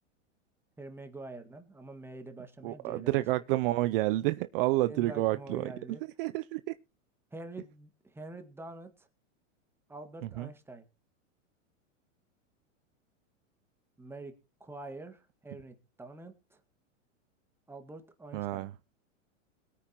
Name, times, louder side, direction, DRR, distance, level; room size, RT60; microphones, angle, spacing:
voice 1, 0.8-3.2 4.8-6.0 7.3-9.1 9.9-10.8 14.0-16.6 17.7-18.7, right 2 dB, 5° right, 1.8 m, -46 dB
voice 2, 2.6-5.7 6.2-6.7 10.4-10.5 18.3-18.7, right 18 dB, 45° right, 0.5 m, -29 dB
21.5 x 9.2 x 2.9 m
supercardioid pair, 135°, 38 cm